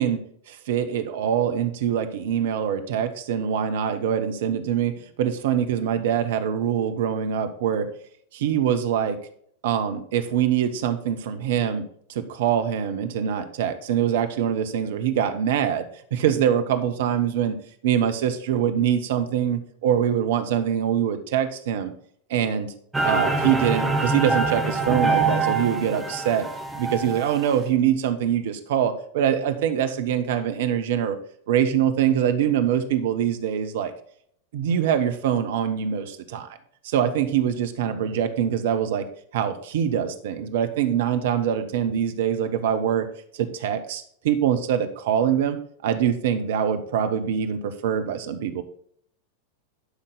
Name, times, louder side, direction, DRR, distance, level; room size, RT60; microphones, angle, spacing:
voice 1, 0.0-7.9 8.3-9.2 9.6-11.8 12.1-15.8 16.1-17.6 17.8-21.9 22.3-22.7 23.0-26.5 26.8-31.2 31.5-33.9 34.5-36.6 36.8-39.0 39.3-43.1 43.3-48.6, right 9 dB, 55° right, 8 dB, 1.2 m, -24 dB
sound 1, 22.9-27.5, right 3 dB, 10° right, 1.1 m, -25 dB
11.5 x 5.9 x 4.0 m, 0.62 s
figure-of-eight pair, 90°, 0 cm